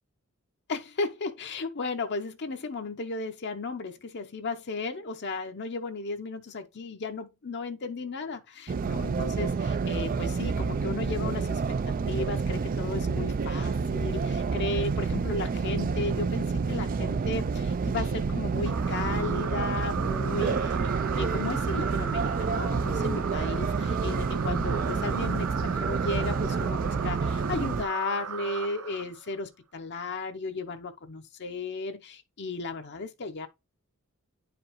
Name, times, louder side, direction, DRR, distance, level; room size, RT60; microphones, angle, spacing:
voice 1, 0.7-11.6 12.1-33.5, left 3 dB, 55° left, 0.7 m, -35 dB
sound 1, 8.7-27.8, right 4 dB, 40° right, 0.4 m, -29 dB
sound 2, 18.7-29.4, right 7 dB, 85° right, 0.7 m, -36 dB
9.8 x 5.0 x 3.0 m
head